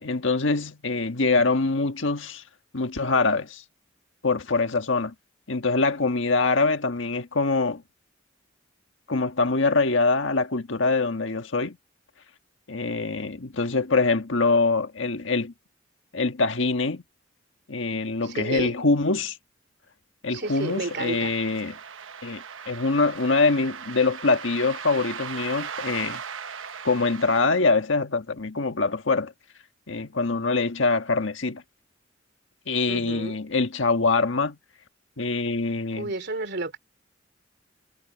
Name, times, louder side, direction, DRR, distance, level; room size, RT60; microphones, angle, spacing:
voice 1, 0.0-2.4 2.7-3.6 4.2-5.1 5.5-7.8 9.1-11.8 12.7-15.5 16.1-17.0 17.7-19.4 20.2-21.8 22.2-26.2 26.8-29.3 29.9-31.6 32.7-34.6 35.2-36.1, left 3 dB, 75° left, 1.5 m, -24 dB
voice 2, 18.2-18.7 20.3-21.3 32.9-33.4 36.0-36.8, right 2 dB, 60° right, 3.0 m, -31 dB
sound 1, 20.4-27.5, right 7 dB, 85° right, 1.1 m, -38 dB
head